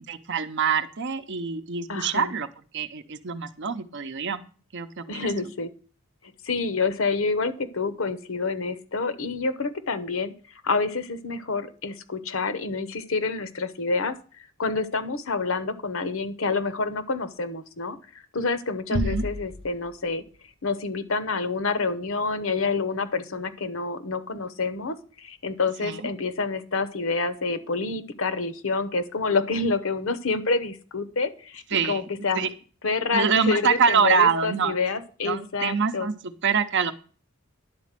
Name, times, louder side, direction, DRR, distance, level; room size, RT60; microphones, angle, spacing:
voice 1, 0.1-2.5 2.7-4.4 4.7-5.3 18.9-19.3 25.8-26.0 31.7-32.1 32.3-32.5 33.1-34.7 35.2-36.1 36.4-36.9, right 6 dB, 55° right, 10 dB, 0.7 m, -25 dB
voice 2, 1.9-2.3 5.1-5.7 6.4-10.3 10.6-14.1 14.6-20.2 20.6-32.5 32.8-36.1, left 4 dB, 60° left, 12 dB, 0.9 m, -28 dB
sound 1, 18.9-20.5, left 2 dB, 25° left, 0.4 m, -32 dB
10.5 x 4.2 x 7.4 m, 0.40 s
head